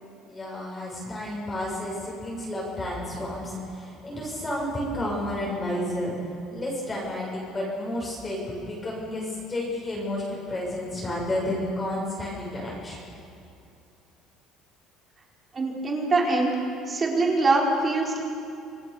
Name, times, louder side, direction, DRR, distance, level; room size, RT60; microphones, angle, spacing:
voice 1, 0.3-6.1 6.5-13.0, left 1 dB, 20° left, -4 dB, 6.8 m, -31 dB
voice 2, 15.5-16.5 16.9-18.2, right 3 dB, 25° right, -1 dB, 4.8 m, -23 dB
27.5 x 18.5 x 7.1 m, 2.6 s
cardioid pair, 120°, 0 cm